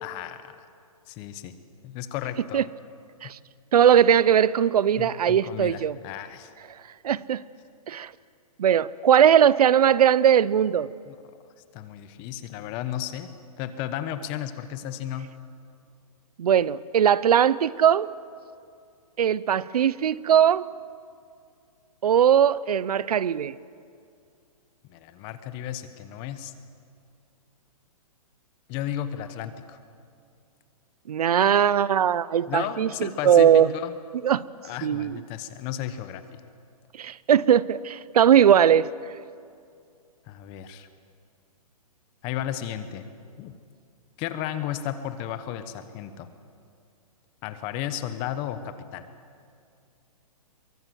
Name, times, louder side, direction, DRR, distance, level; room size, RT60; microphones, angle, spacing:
voice 1, 0.0-0.5 1.1-1.5 1.8-2.6 5.0-6.5 11.0-11.2 11.7-15.3 24.9-26.5 28.7-29.8 32.5-33.9 34.6-36.4 40.3-40.9 42.2-43.0 43.4-43.5 44.2-46.3 47.4-49.1, left 11 dB, 25° left, 11 dB, 1.2 m, -34 dB
voice 2, 3.7-6.0 7.0-7.4 7.9-8.1 8.6-10.9 16.4-18.1 19.2-20.7 22.0-23.5 31.1-33.7 34.2-34.4 34.8-35.2 37.0-38.9, right 9 dB, 75° right, 20 dB, 0.7 m, -19 dB
23.5 x 22.5 x 7.8 m, 2.4 s
hypercardioid pair, 160°, 20 cm